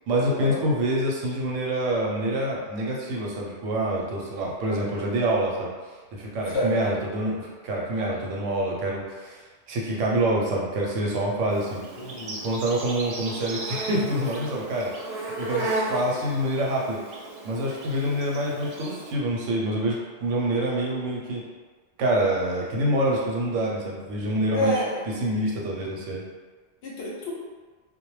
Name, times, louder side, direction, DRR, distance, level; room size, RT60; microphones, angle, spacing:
voice 1, 0.1-5.7 6.2-9.4 9.7-11.8 12.4-14.9 15.4-17.0 17.4-21.4 22.0-24.8 25.2-26.2, right 1 dB, 90° right, -3 dB, 1.0 m, -26 dB
Insect, 11.5-19.1, right 2 dB, 65° right, 0.7 m, -34 dB
voice 2, 12.0-12.4 24.5-25.0 26.8-27.3, left 1 dB, 60° left, -5 dB, 0.8 m, -28 dB
2.2 x 2.1 x 3.0 m, 1.4 s
omnidirectional pair, 1.2 m